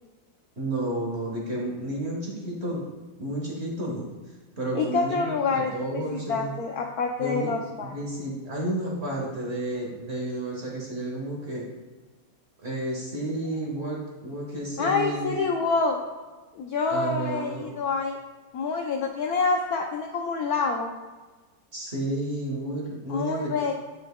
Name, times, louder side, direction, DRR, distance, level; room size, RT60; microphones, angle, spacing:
voice 1, 0.6-2.8 3.2-4.1 4.6-6.5 7.2-7.5 7.8-11.7 12.6-15.4 16.9-17.7 21.7-23.5, right 1 dB, 35° right, -2 dB, 1.3 m, -31 dB
voice 2, 4.7-5.7 6.1-7.9 14.8-16.0 16.6-18.2 18.5-20.9 23.1-23.7, left 4 dB, 85° left, 2 dB, 0.8 m, -27 dB
9.0 x 5.3 x 2.2 m, 1.3 s
omnidirectional pair, 2.1 m